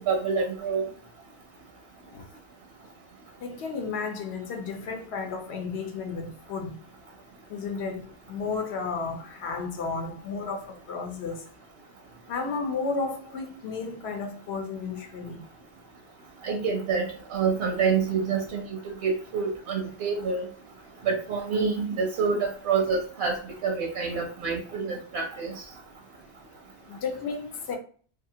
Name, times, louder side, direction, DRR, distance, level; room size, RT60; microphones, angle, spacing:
voice 1, 0.1-0.9 16.4-18.6 19.0-20.4 21.0-23.4 23.6-25.6, right 5 dB, 80° right, 0.8 m, -27 dB
voice 2, 3.4-6.7 7.5-8.0 8.3-11.4 12.3-15.4 26.9-27.8, left 4 dB, 80° left, 0.9 m, -33 dB
2.8 x 2.4 x 2.7 m
omnidirectional pair, 1.1 m